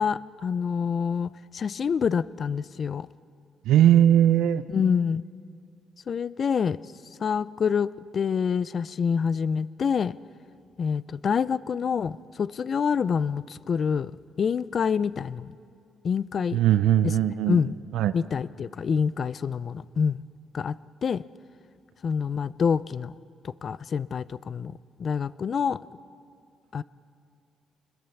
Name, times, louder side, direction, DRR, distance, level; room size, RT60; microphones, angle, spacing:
voice 1, 0.0-3.1 4.7-5.2 6.1-6.8 7.2-10.2 10.8-14.1 14.4-15.5 16.0-16.6 17.0-17.2 17.5-17.8 18.1-20.2 20.5-20.7 21.0-21.2 22.0-23.1 23.4-24.7 25.0-25.9 26.7-26.8, left 6 dB, 50° left, 18 dB, 0.5 m, -26 dB
voice 2, 3.7-4.6 16.5-17.6 17.9-18.1, right 11 dB, 85° right, 13 dB, 0.6 m, -19 dB
26.0 x 21.0 x 7.2 m, 2.4 s
cardioid pair, 90°, 0 cm